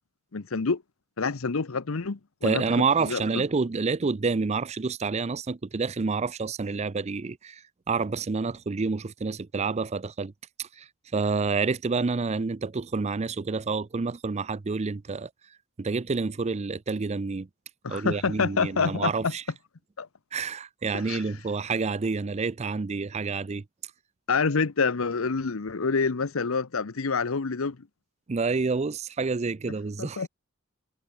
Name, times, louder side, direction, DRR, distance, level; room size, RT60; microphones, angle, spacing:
voice 1, 0.3-0.8 1.2-2.7 3.0-3.4 17.8-19.3 20.0-20.1 20.9-21.2 24.3-27.8 30.0-30.3, left 4 dB, 70° left, 0.8 m, -27 dB
voice 2, 2.4-7.6 7.9-10.3 10.6-15.3 15.8-17.5 17.9-19.4 20.3-23.6 28.3-30.2, right 4 dB, 30° right, 0.5 m, -28 dB
head